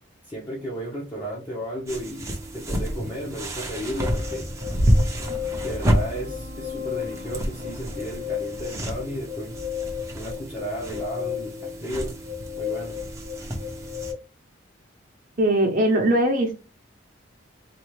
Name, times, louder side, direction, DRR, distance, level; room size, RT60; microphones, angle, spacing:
voice 1, 0.2-2.3 2.5-4.4 5.6-9.6 10.1-12.1 12.6-13.0, equal, 15° left, -5 dB, 1.1 m, -34 dB
sound 1, 1.9-14.1, equal, 15° right, 0.8 m, -29 dB
sound 2, 4.0-14.1, left 10 dB, 70° right, 1.1 m, -34 dB
voice 2, 15.4-16.6, right 1 dB, 45° right, 0 dB, 0.9 m, -21 dB
4.2 x 2.7 x 3.2 m, 0.32 s
head